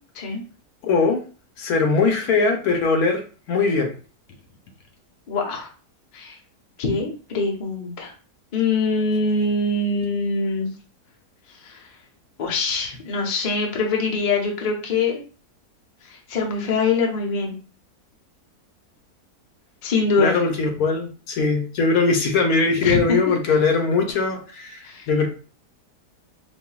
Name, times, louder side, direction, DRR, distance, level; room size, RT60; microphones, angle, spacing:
voice 1, 0.8-1.2 1.6-3.2 3.5-3.9 20.2-24.8 25.1-25.3, left 4 dB, 70° left, 4 dB, 1.0 m, -20 dB
voice 2, 5.3-5.7 6.1-6.4 6.8-8.1 8.5-10.7 11.5-11.9 12.4-15.2 16.0-17.6 19.8-20.4 22.8-23.6 24.8-25.1, left 3 dB, 45° left, 0 dB, 0.6 m, -24 dB
5.1 x 2.6 x 2.3 m, 0.37 s
omnidirectional pair, 1.8 m